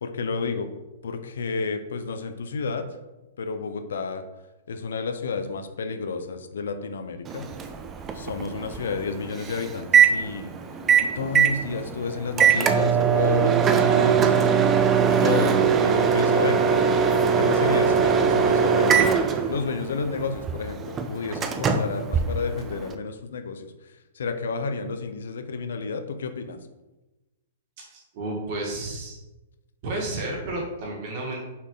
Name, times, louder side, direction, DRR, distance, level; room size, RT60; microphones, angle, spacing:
voice 1, 0.0-0.7 1.0-2.9 3.4-4.2 4.7-7.5 8.1-10.5 11.0-14.5 15.0-16.6 17.4-19.1 19.5-23.7 24.2-26.6, left 4 dB, 80° left, 9 dB, 0.7 m, -31 dB
Microwave oven, 7.3-22.9, right 6 dB, 15° right, 0.3 m, -21 dB
voice 2, 27.9-29.2 29.8-31.4, right 2 dB, 35° right, -2 dB, 1.7 m, -31 dB
5.9 x 4.2 x 3.8 m, 1.1 s
hypercardioid pair, 175°, 0 cm